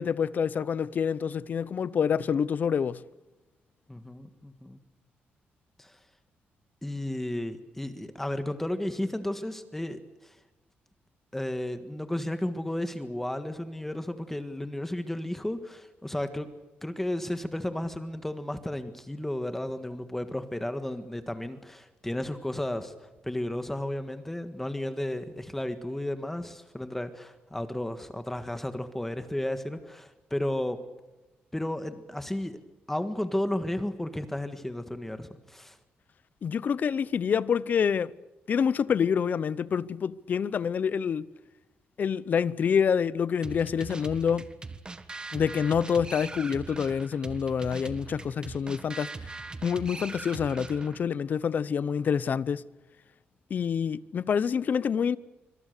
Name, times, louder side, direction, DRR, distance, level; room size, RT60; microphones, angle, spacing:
voice 1, 0.0-3.0 36.4-38.1 38.5-41.3 42.0-44.5 45.3-49.1 49.6-52.6 53.5-55.2, left 7 dB, 50° left, 0.8 m, -27 dB
voice 2, 3.9-4.8 5.8-6.0 6.8-10.4 11.3-16.5 16.8-22.9 23.2-30.8 31.5-32.6 32.9-35.8, left 1 dB, 5° left, 1.6 m, -33 dB
sound 1, 43.4-51.0, right 3 dB, 20° right, 1.5 m, -41 dB
26.5 x 25.0 x 6.7 m
cardioid pair, 130°, 4 cm